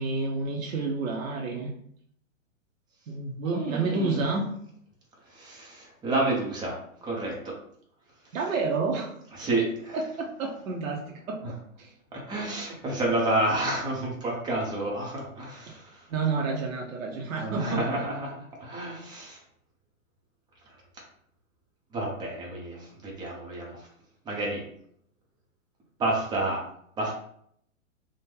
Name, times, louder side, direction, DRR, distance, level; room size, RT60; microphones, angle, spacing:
voice 1, 0.0-1.7 3.1-4.5 8.3-9.1 9.9-11.9 15.7-15.8 16.1-18.0, right 4 dB, 75° right, 0 dB, 0.7 m, -30 dB
voice 2, 3.4-4.2 5.3-7.5 9.4-10.0 12.1-16.0 17.4-18.3 18.6-19.4 21.9-23.9 24.2-24.6 26.0-26.6 27.0-27.1, right 2 dB, 10° right, -3 dB, 0.6 m, -30 dB
3.4 x 2.1 x 3.2 m, 0.67 s
hypercardioid pair, 125°, 41 cm